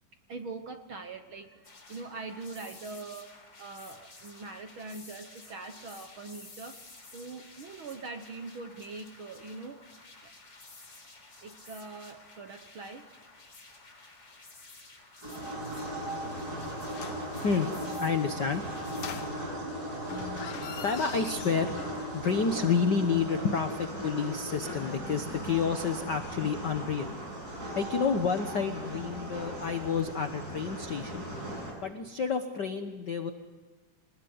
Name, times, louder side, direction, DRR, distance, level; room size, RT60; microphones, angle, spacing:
voice 1, 0.3-6.8 7.1-9.8 10.2-10.3 11.4-13.1, right 3 dB, 55° right, 6 dB, 1.4 m, -43 dB
sound 1, 1.6-19.3, left 3 dB, 35° left, 4.6 m, -52 dB
sound 2, 15.2-31.7, right 1 dB, 25° right, 7.4 m, -37 dB
sound 3, 16.8-17.3 18.9-19.7 20.0-22.3 22.6-22.7, left 7 dB, 60° left, 1.4 m, -43 dB
voice 2, 17.4-18.9 20.8-21.7 22.1-27.1 27.7-31.3 31.8-33.3, left 5 dB, 85° left, 7 dB, 0.9 m, -29 dB
25.5 x 20.5 x 9.5 m, 1.3 s
omnidirectional pair, 3.8 m